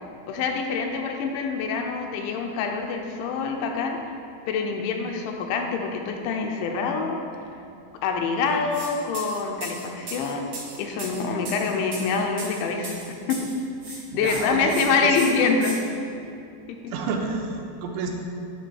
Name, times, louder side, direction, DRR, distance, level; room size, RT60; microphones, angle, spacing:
voice 1, 0.3-4.0 4.5-7.2 8.0-13.5 13.9-15.9 16.7-16.9, left 4 dB, 85° left, 3 dB, 3.0 m, -26 dB
sound 1, 8.7-8.9 9.1-13.5 13.8-14.4 14.7-14.8 15.1-15.7, right 3 dB, 65° right, 1.2 m, -37 dB
voice 2, 14.1-15.3 16.9-18.1, right 4 dB, 80° right, 2 dB, 2.8 m, -30 dB
9.6 x 3.6 x 6.2 m, 2.5 s
omnidirectional pair, 5.3 m